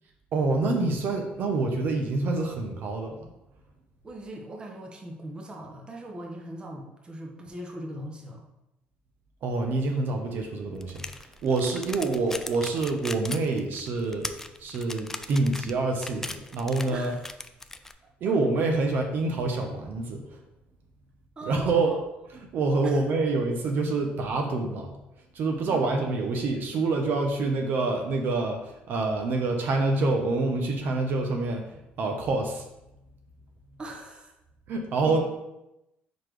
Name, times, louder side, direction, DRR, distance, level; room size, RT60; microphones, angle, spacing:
voice 1, 0.3-3.2 9.4-11.0 11.4-14.3 14.6-17.1 18.2-20.3 21.5-21.9 22.5-24.9 25.3-28.6 28.9-31.6 32.0-32.6 34.7-35.2, right 3 dB, 60° right, 3 dB, 0.9 m, -26 dB
voice 2, 4.0-8.4 11.6-12.2 16.9-17.3 18.2-18.4 21.4-22.0 22.8-23.4 25.6-26.0 33.8-34.3 35.0-35.2, right 1 dB, 25° right, 1 dB, 0.9 m, -40 dB
sound 1, 10.8-17.9, left 2 dB, 10° left, 0.3 m, -38 dB
5.0 x 4.1 x 4.8 m, 0.90 s
cardioid pair, 135°, 4 cm